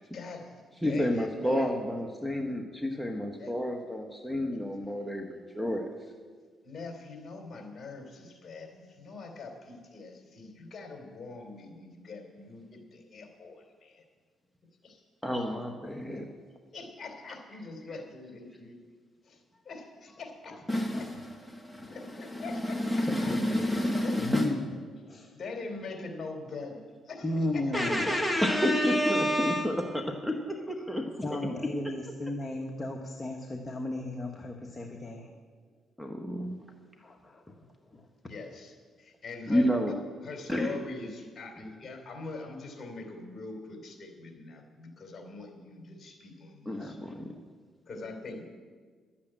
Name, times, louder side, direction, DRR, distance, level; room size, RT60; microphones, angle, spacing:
voice 1, 0.1-0.5 0.8-1.7 3.4-3.5 6.6-14.0 14.8-15.0 16.7-18.7 19.2-20.6 21.0-21.1 21.9-23.3 24.0-24.1 25.3-28.2 28.6-28.7 38.3-39.7 40.2-47.0 47.9-48.4, left 3 dB, 45° left, 3 dB, 3.2 m, -43 dB
voice 2, 0.8-5.9 15.2-16.2 20.7-21.3 21.5-24.5 27.7-31.1 36.0-36.6 39.5-39.9 40.5-40.8 41.6-41.7 46.6-47.3, equal, ahead, 3 dB, 1.3 m, -29 dB
voice 3, 23.1-23.8 24.2-24.7 25.0-25.3 27.2-28.1 30.9-35.3 36.4-36.5 37.0-37.6 37.9-38.1, left 1 dB, 25° left, 2 dB, 1.3 m, -35 dB
12.0 x 8.5 x 8.8 m, 1.5 s
cardioid pair, 90°, 0 cm